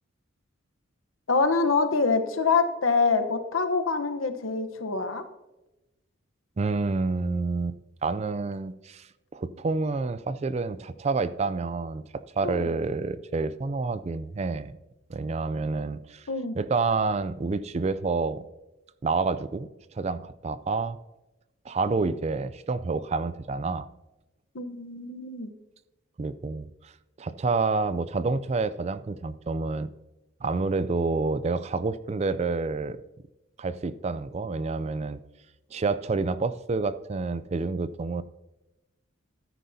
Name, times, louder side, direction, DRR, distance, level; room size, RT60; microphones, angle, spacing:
voice 1, 1.3-5.2 12.4-12.7 16.3-16.6 24.5-25.5, left 4 dB, 90° left, 8 dB, 1.0 m, -25 dB
voice 2, 6.6-14.7 15.1-16.3 16.5-18.4 19.0-19.7 20.0-21.0 21.7-23.9 26.2-26.9 27.2-29.9 30.4-33.0 33.6-35.2 35.7-38.2, right 3 dB, 30° right, 15 dB, 0.4 m, -28 dB
13.5 x 10.0 x 2.7 m, 1.0 s
head